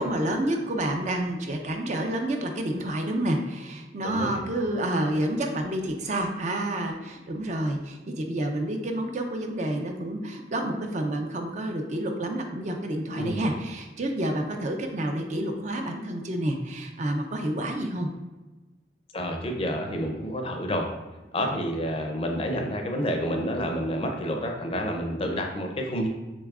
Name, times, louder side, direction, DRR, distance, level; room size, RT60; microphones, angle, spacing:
voice 1, 0.0-18.1, right 1 dB, 40° right, 4 dB, 0.5 m, -29 dB
voice 2, 4.0-4.4 13.1-13.4 19.1-20.9 21.3-26.1, equal, 30° left, 2 dB, 0.5 m, -29 dB
6.8 x 3.1 x 2.4 m, 1.2 s
head